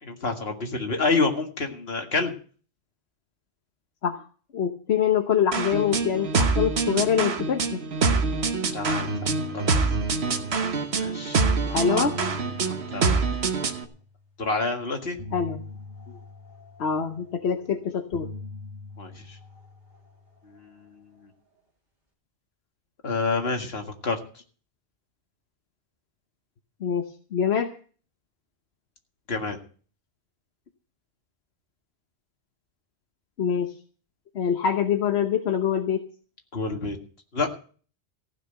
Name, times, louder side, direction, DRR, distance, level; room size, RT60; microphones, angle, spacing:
voice 1, 0.0-2.3 8.7-9.7 11.0-12.1 12.9-13.2 14.4-15.2 19.0-19.4 20.5-21.0 23.0-24.2 29.3-29.6 36.5-37.0 37.3-37.5, left 3 dB, 70° left, 3 dB, 2.1 m, -28 dB
voice 2, 4.5-7.8 11.7-12.1 15.3-15.6 16.8-18.3 26.8-27.7 33.4-33.7 34.3-36.0, left 8 dB, 90° left, 5 dB, 1.2 m, -25 dB
sound 1, 5.5-13.8, right 4 dB, 85° right, 1.4 m, -25 dB
sound 2, 8.2-8.5 8.7-11.1 11.7-14.2 15.2-17.6 18.1-20.7, left 2 dB, 45° right, 2.7 m, -42 dB
15.0 x 6.2 x 8.9 m, 0.42 s
omnidirectional pair, 1.0 m